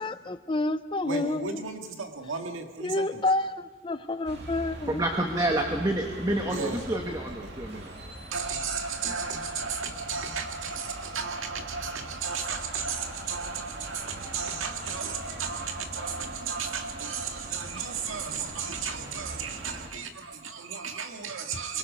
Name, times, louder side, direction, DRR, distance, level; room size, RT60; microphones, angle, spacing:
voice 1, 0.0-1.6 2.8-5.0, left 2 dB, 25° left, 10 dB, 0.6 m, -29 dB
voice 2, 1.0-3.2 6.5-7.0 7.4-7.9 8.3-21.8, right 5 dB, 85° right, 4 dB, 1.9 m, -34 dB
sound 1, 4.2-19.9, right 1 dB, 55° right, 2.5 m, -42 dB
voice 3, 4.9-8.1, right 1 dB, 20° right, 2 dB, 1.2 m, -28 dB
23.5 x 22.5 x 5.4 m, 1.3 s
head